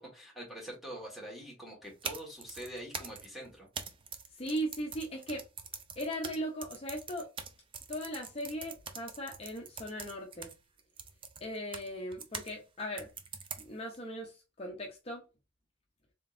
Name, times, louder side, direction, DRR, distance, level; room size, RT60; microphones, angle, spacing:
voice 1, 0.0-3.7, right 1 dB, ahead, 1.5 m, -45 dB
sound 1, 1.8-12.5 13.0-14.0, right 6 dB, 25° right, 0.4 m, -44 dB
voice 2, 4.3-5.4 6.0-7.3 7.9-10.5 11.4-13.1 13.7-15.2, equal, 30° left, 0.6 m, -38 dB
3.6 x 3.6 x 2.5 m
head